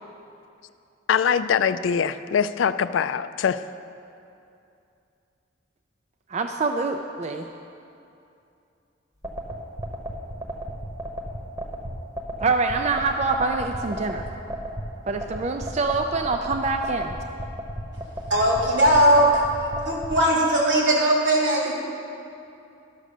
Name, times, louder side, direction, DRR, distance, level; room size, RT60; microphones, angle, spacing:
voice 1, 1.1-3.6, left 7 dB, 80° left, 13 dB, 0.4 m, -23 dB
voice 2, 6.3-7.5 12.4-14.2 15.1-17.2, right 3 dB, 35° right, 5 dB, 0.4 m, -25 dB
sound 1, 9.2-20.2, right 1 dB, 20° right, 1.0 m, -33 dB
voice 3, 18.3-19.4 19.9-21.7, right 1 dB, 80° right, -3 dB, 2.6 m, -19 dB
12.0 x 6.3 x 6.6 m, 2.6 s
head